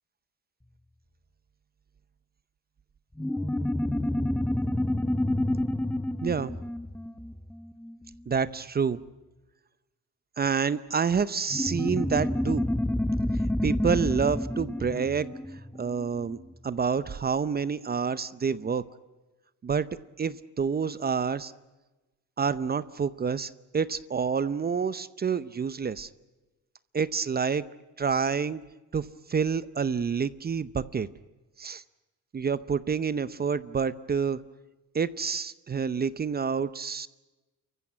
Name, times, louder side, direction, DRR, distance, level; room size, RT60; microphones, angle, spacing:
sound 1, 3.2-8.1 11.5-16.4, left 1 dB, 5° left, 0.8 m, -29 dB
voice 1, 6.2-6.5 8.3-9.0 10.4-12.6 13.6-15.4 15.8-16.4 16.6-18.8 19.6-19.9 20.2-21.5 22.4-26.1 26.9-27.6 28.0-28.6 28.9-31.1 31.6-31.8 32.3-34.4 34.9-37.1, right 6 dB, 30° right, 16 dB, 0.7 m, -28 dB
28.0 x 15.0 x 9.5 m, 1.1 s
cardioid pair, 90°, 30 cm